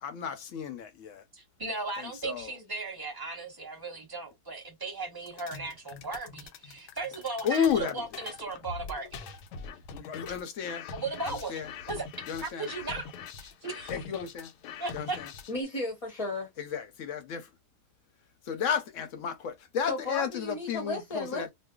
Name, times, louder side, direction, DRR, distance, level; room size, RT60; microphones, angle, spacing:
voice 1, 0.0-1.2 2.0-2.5 7.4-7.9 9.9-10.9 11.3-11.7 12.3-12.7 13.9-14.5 14.9-15.3 16.6-17.5 18.5-21.5, left 7 dB, 65° left, 0.8 m, -32 dB
voice 2, 1.3-9.4 10.9-12.1 12.4-13.1 13.4-13.9 14.8-15.2, right 3 dB, 15° right, 0.9 m, -37 dB
sound 1, 5.3-15.6, left 5 dB, 90° left, 1.2 m, -44 dB
voice 3, 15.5-16.5 19.9-21.5, left 2 dB, 35° left, 0.6 m, -34 dB
2.6 x 2.2 x 3.6 m
omnidirectional pair, 1.7 m